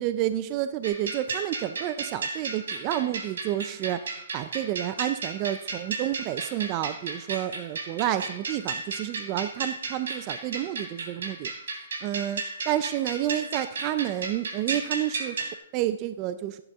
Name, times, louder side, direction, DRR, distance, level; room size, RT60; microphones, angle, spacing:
voice 1, 0.0-11.5 12.0-16.6, right 13 dB, 25° right, 11 dB, 0.4 m, -30 dB
sound 1, 0.8-15.5, right 4 dB, 75° right, 3.2 m, -34 dB
16.0 x 10.0 x 3.5 m, 0.89 s
hypercardioid pair, 165°, 0 cm